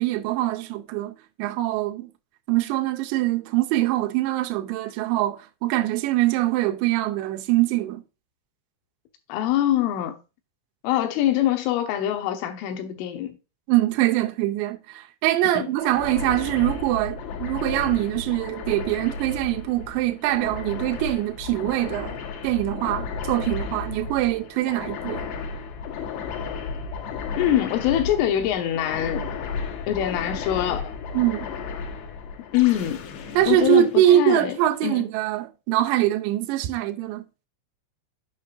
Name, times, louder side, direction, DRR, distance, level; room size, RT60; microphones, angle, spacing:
voice 1, 0.0-2.1 2.5-8.0 13.7-22.2 22.4-25.3 31.1-31.5 33.3-37.3, right 14 dB, 85° right, 2.6 m, -23 dB
voice 2, 9.3-10.2 10.8-13.4 15.5-15.7 27.4-29.3 29.9-30.9 32.5-33.1 33.5-34.6 34.8-35.1, left 12 dB, 85° left, 3.5 m, -24 dB
sound 1, 15.8-34.7, left 5 dB, 70° left, 3.4 m, -34 dB
8.3 x 6.0 x 2.5 m
omnidirectional pair, 5.5 m